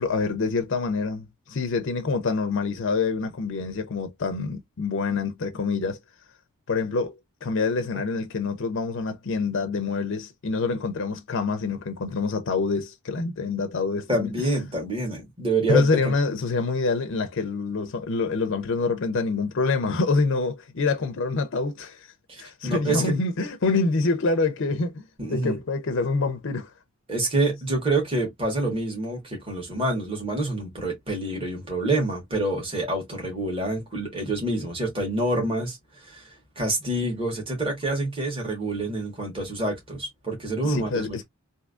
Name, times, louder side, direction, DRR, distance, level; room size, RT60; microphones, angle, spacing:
voice 1, 0.0-6.0 6.7-14.3 15.7-22.1 22.4-26.7 40.6-41.2, left 4 dB, 55° left, 0.5 m, -26 dB
voice 2, 14.1-16.1 22.3-23.1 25.2-25.6 27.1-35.8 36.0-36.3 36.5-41.2, right 2 dB, 25° right, 1.6 m, -27 dB
3.5 x 2.7 x 2.4 m
head